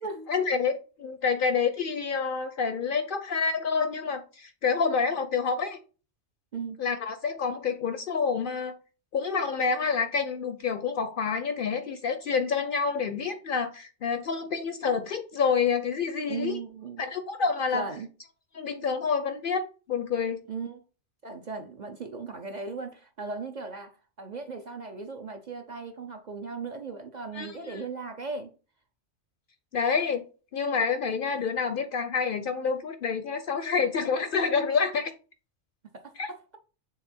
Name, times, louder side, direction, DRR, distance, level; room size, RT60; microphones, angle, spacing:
voice 1, 0.3-5.8 6.8-8.7 9.1-16.6 17.0-17.8 18.5-20.4 27.3-27.8 29.7-30.2 30.5-35.1 36.2-36.3, left 5 dB, 60° left, 0.6 m, -28 dB
voice 2, 16.3-17.0 17.7-18.1 20.5-20.8 21.2-28.5 35.9-36.6, right 4 dB, 45° right, 0.6 m, -37 dB
6.5 x 3.5 x 4.3 m
omnidirectional pair, 1.2 m